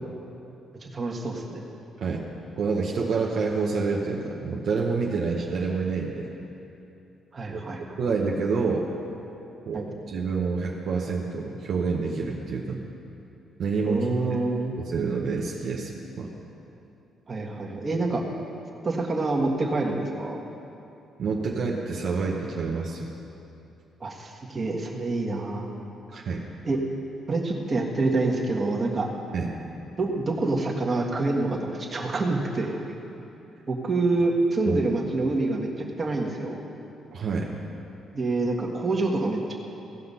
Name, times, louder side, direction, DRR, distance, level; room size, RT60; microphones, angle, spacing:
voice 1, 0.8-1.6 7.3-8.0 9.7-9.8 13.8-14.7 17.3-18.2 18.8-20.4 24.0-25.7 26.6-26.8 27.3-29.1 30.0-32.8 33.7-35.7 36.0-36.6 38.1-39.5, right 2 dB, 35° right, -1 dB, 1.7 m, -26 dB
voice 2, 2.6-6.3 7.5-7.6 8.0-8.9 9.7-12.8 13.6-14.1 14.8-16.3 21.2-23.1 26.1-26.4 29.3-29.5 34.7-34.8 37.1-37.5, right 4 dB, 65° right, -2 dB, 1.0 m, -28 dB
16.5 x 5.8 x 5.6 m, 2.8 s
cardioid pair, 90°, 0 cm